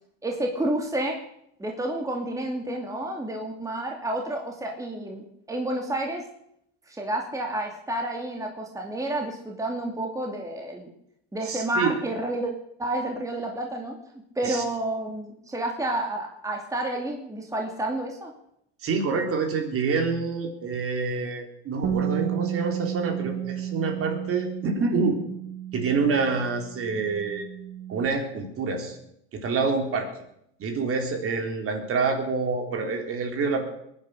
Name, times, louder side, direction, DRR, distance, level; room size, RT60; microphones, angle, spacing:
voice 1, 0.2-1.2 1.6-6.2 6.9-10.9 11.3-12.5 12.8-13.9 14.4-18.3, right 1 dB, 10° right, 1 dB, 2.6 m, -30 dB
voice 2, 11.4-12.0 14.4-14.6 18.8-25.2 25.7-27.4 27.9-29.0 29.3-30.1 30.6-33.6, right 4 dB, 40° right, 4 dB, 3.7 m, -27 dB
Bass guitar, 21.8-28.1, right 10 dB, 55° right, 1.8 m, -32 dB
21.5 x 10.0 x 6.6 m, 0.73 s
supercardioid pair, 110°, 34 cm